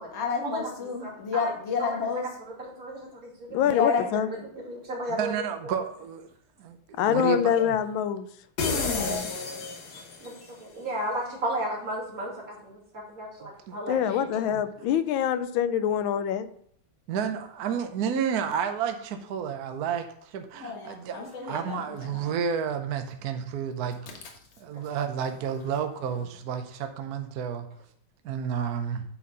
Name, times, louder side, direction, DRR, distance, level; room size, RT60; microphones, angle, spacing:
voice 1, 0.1-2.3 3.6-4.0 4.4-4.5 7.4-7.6 8.9-9.6 14.2-14.6 20.6-22.3, left 5 dB, 35° left, 1 dB, 1.5 m, -31 dB
voice 2, 1.0-1.4 1.8-1.9 2.6-3.5 4.1-4.2 4.5-5.3 10.0-12.3 12.6-14.0 14.3-14.4 21.2-21.3, right 1 dB, 40° right, -4 dB, 2.9 m, -34 dB
voice 3, 3.5-4.3 7.0-8.3 13.9-16.5, left 9 dB, 75° left, 12 dB, 1.3 m, -25 dB
voice 4, 5.1-6.3 6.6-7.8 13.4-13.8 14.5-14.6 17.1-24.1 24.6-27.7 28.2-29.0, right 7 dB, 65° right, 7 dB, 0.9 m, -31 dB
sound 1, 8.6-10.4, left 4 dB, 55° left, 1.4 m, -30 dB
8.5 x 4.2 x 5.3 m, 0.66 s
omnidirectional pair, 2.4 m